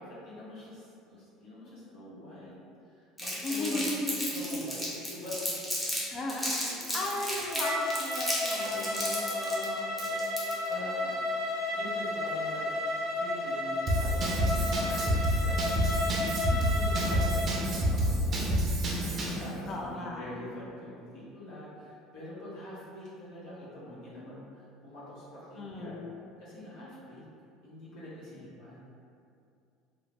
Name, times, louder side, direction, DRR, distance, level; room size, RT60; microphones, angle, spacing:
voice 1, 0.0-2.5 2.9-4.0 4.3-4.8 5.1-6.9 8.5-11.1 11.7-12.7 13.0-16.3 16.8-26.0 26.4-27.2 27.6-28.8, left 1 dB, 75° left, -9 dB, 0.9 m, -44 dB
Crumpling crinkling, 3.2-6.0 6.3-10.7, equal, 10° left, 0.8 m, -34 dB
voice 2, 3.4-4.6 6.1-9.9 16.5-17.1 19.7-20.3 25.6-26.1, left 1 dB, 35° left, -1 dB, 0.3 m, -37 dB
Bowed string instrument, 7.4-17.5, left 1 dB, 55° left, 1.1 m, -33 dB
Drum kit / Drum, 13.9-19.4, equal, 40° right, 0.5 m, -28 dB
3.0 x 2.0 x 2.5 m, 2.4 s
supercardioid pair, 90°, 0 cm